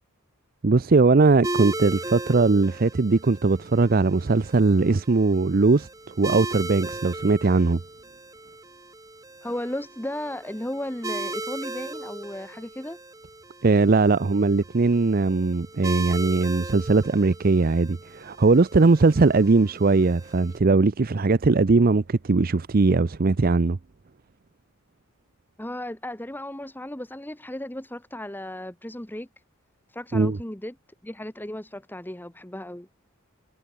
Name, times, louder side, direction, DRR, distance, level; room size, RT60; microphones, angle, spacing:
voice 1, 0.6-5.9 6.2-7.8 13.6-23.8 30.1-30.4, right 3 dB, 45° right, 0.5 m, -20 dB
sound 1, 1.4-20.6, right 2 dB, 15° right, 3.1 m, -38 dB
voice 2, 9.4-13.0 25.6-29.3 29.9-30.7 31.0-32.9, left 1 dB, 10° left, 1.2 m, -35 dB
head